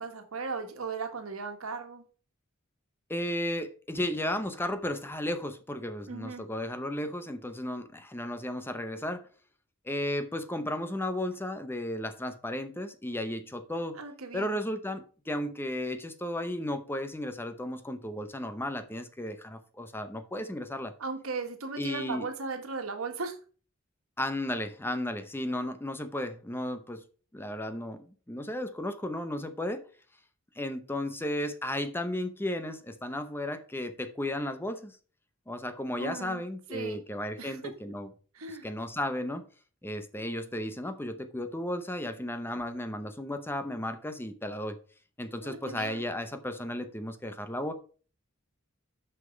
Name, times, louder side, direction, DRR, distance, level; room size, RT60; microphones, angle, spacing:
voice 1, 0.0-2.0 6.0-6.4 13.9-14.6 21.0-23.4 36.0-36.4 36.7-37.0 37.4-37.6 38.3-38.7 45.4-46.0, right 4 dB, 90° right, 5 dB, 1.5 m, -37 dB
voice 2, 3.1-9.3 9.8-14.0 14.3-20.9 21.8-22.3 24.2-27.0 27.3-29.8 30.6-34.9 35.5-38.1 38.5-39.4 39.8-44.8 45.2-47.7, left 1 dB, 10° left, 9 dB, 0.7 m, -34 dB
6.4 x 5.8 x 5.1 m, 0.40 s
head